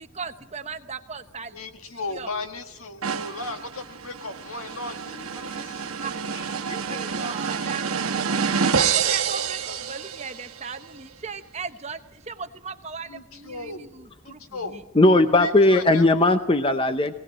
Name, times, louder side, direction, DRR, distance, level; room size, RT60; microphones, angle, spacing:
voice 1, 0.0-1.6 2.1-2.3 6.0-6.2 6.9-8.3 8.9-14.8, right 5 dB, 30° right, 8 dB, 1.0 m, -37 dB
voice 2, 1.5-6.3 7.1-7.7 8.7-9.0 9.4-9.9 13.1-13.9 14.2-14.8 15.4-16.1, left 3 dB, 75° left, 6 dB, 1.8 m, -36 dB
sound 1, 3.0-10.6, right 6 dB, 80° right, 1.3 m, -27 dB
voice 3, 15.0-17.1, left 2 dB, 25° left, 9 dB, 0.7 m, -18 dB
19.0 x 18.5 x 9.0 m, 0.91 s
head